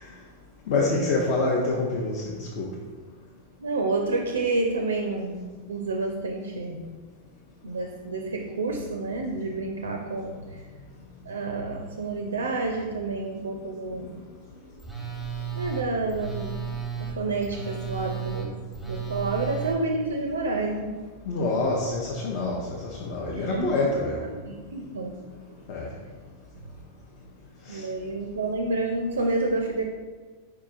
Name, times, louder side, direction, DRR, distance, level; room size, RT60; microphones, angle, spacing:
voice 1, 0.7-2.2 2.6-2.7 21.3-24.2 25.7-25.9 27.7-27.8, left 2 dB, 50° left, -2 dB, 0.6 m, -26 dB
voice 2, 3.6-6.9 7.6-10.7 11.3-14.2 15.5-16.6 17.0-21.0 23.3-23.9 24.2-25.2 27.7-29.8, right 2 dB, 70° right, 3 dB, 0.4 m, -29 dB
Telephone, 14.8-19.8, right 7 dB, 5° left, 0.8 m, -34 dB
4.6 x 4.6 x 2.5 m, 1.4 s
figure-of-eight pair, 90°, 0 cm